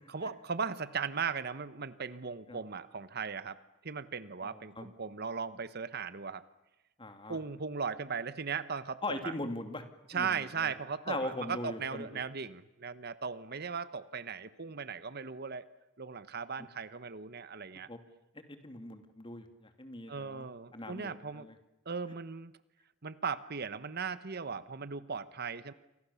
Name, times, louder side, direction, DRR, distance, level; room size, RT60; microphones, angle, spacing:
voice 1, 0.1-6.4 7.3-9.3 10.1-15.6 16.0-17.9 20.1-21.5 21.9-22.5 23.0-25.7, right 5 dB, 50° right, 14 dB, 1.1 m, -38 dB
voice 2, 4.4-4.9 7.0-7.4 9.0-9.8 10.1-10.7 11.1-12.2 17.9-18.0 18.3-21.6, left 2 dB, 25° left, 7 dB, 2.8 m, -41 dB
29.5 x 25.5 x 7.1 m, 0.93 s
head